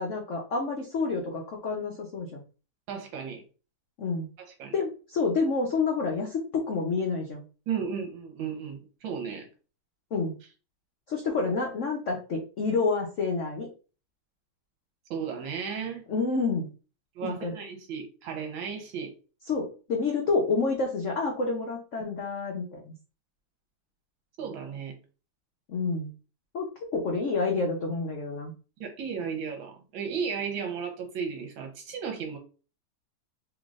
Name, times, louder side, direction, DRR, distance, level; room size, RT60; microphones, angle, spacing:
voice 1, 0.0-2.4 4.0-4.3 4.7-7.4 10.1-10.3 11.1-13.7 16.1-16.7 17.2-17.5 19.5-22.9 25.7-26.1 26.5-28.5, left 4 dB, 70° left, 0 dB, 0.7 m, -28 dB
voice 2, 2.9-3.4 4.6-4.7 7.7-9.5 15.1-16.0 17.1-19.1 22.0-22.1 24.4-24.9 28.8-32.4, right 6 dB, 75° right, 4 dB, 1.6 m, -34 dB
3.7 x 3.4 x 2.4 m, 0.35 s
omnidirectional pair, 2.2 m